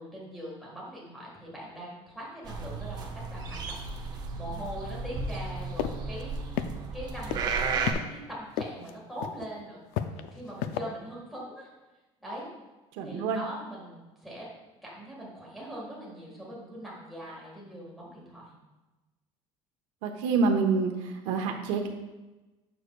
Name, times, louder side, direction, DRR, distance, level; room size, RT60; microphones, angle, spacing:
voice 1, 0.0-6.4 6.9-9.8 10.3-11.7 12.2-12.5 13.0-14.5 14.8-18.5, equal, ahead, -5 dB, 1.6 m, -42 dB
sound 1, 2.4-7.9, right 4 dB, 35° right, 0.6 m, -34 dB
sound 2, 5.8-5.9 6.2-6.3 6.6-7.0 7.3-8.0 8.6-8.9 9.2-9.5 9.9-10.8, left 10 dB, 80° left, 0.4 m, -30 dB
voice 2, 13.0-13.4 20.0-20.9 21.3-21.9, right 4 dB, 90° right, 2 dB, 1.0 m, -26 dB
7.9 x 6.6 x 2.3 m, 1.1 s
cardioid pair, 175°, 12 cm